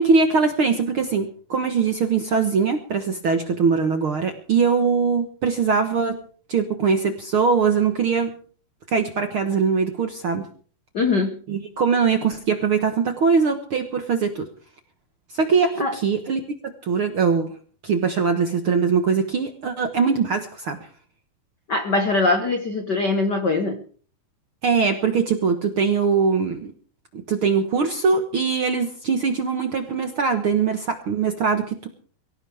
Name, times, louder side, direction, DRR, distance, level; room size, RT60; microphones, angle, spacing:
voice 1, 0.0-6.2 6.5-8.3 8.9-10.5 11.5-14.5 15.3-17.5 17.8-20.8 24.6-26.7 27.3-31.9, right 5 dB, 60° right, 6 dB, 1.4 m, -21 dB
voice 2, 10.9-11.4 15.8-16.0 21.7-23.8, left 3 dB, 85° left, 6 dB, 0.9 m, -22 dB
23.5 x 16.0 x 3.5 m, 0.43 s
omnidirectional pair, 4.3 m